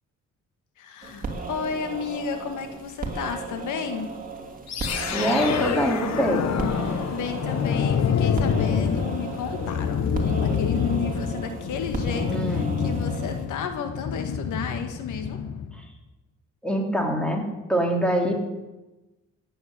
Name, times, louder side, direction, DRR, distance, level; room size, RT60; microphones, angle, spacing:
voice 1, 0.8-4.1 6.9-15.4, left 6 dB, 80° left, 6 dB, 1.8 m, -32 dB
sound 1, 1.0-13.5, right 4 dB, 30° right, 3.1 m, -36 dB
sound 2, 4.7-15.8, left 7 dB, 60° left, 1.4 m, -27 dB
voice 2, 5.1-6.5 12.3-12.8 15.7-15.8 16.6-17.4 17.7-18.3, right 1 dB, 5° left, 1 dB, 3.4 m, -24 dB
16.0 x 9.3 x 7.7 m, 1.1 s
cardioid pair, 90°, 30 cm